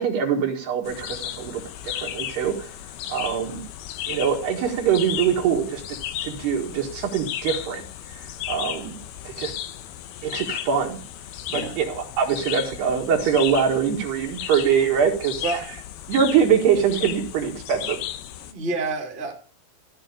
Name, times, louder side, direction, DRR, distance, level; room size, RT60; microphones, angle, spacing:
voice 1, 0.0-2.7 3.1-3.6 4.1-7.8 8.5-9.0 9.3-9.5 10.2-11.0 11.5-15.4 16.1-18.0, right 7 dB, 65° right, 1 dB, 3.6 m, -23 dB
sound 1, 0.9-18.5, left 11 dB, 80° left, 2.3 m, -35 dB
voice 2, 18.4-19.3, right 3 dB, 15° right, 0 dB, 2.2 m, -28 dB
15.5 x 6.1 x 8.4 m, 0.41 s
omnidirectional pair, 5.6 m